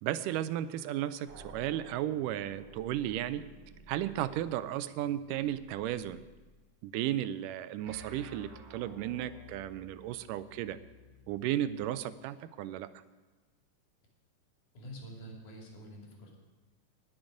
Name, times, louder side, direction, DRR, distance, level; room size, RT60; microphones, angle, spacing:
voice 1, 0.0-3.4 3.9-6.2 6.8-10.8 11.3-12.9, right 12 dB, 85° right, 14 dB, 2.2 m, -34 dB
sound 1, 1.3-6.6 7.9-11.8, right 1 dB, 55° right, 1.9 m, -54 dB
voice 2, 14.7-16.4, equal, 70° left, -1 dB, 4.0 m, -47 dB
20.0 x 7.4 x 5.1 m, 1.3 s
omnidirectional pair, 3.7 m